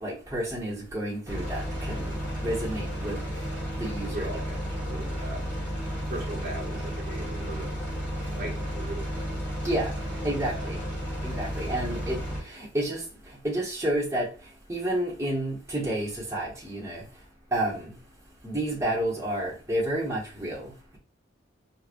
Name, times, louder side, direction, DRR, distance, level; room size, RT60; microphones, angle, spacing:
voice 1, 0.0-3.2 3.8-4.3 9.6-9.9 10.2-10.8 11.2-13.0 13.4-14.3 14.7-17.0 17.5-17.9 18.4-20.7, right 1 dB, 15° right, 1.1 m, -30 dB
sound 1, 1.3-12.4, equal, 5° left, 1.7 m, -33 dB
voice 2, 4.0-5.4 6.1-7.8 8.4-9.0 10.1-10.7, right 1 dB, 55° right, 1.0 m, -39 dB
4.8 x 2.3 x 2.5 m
head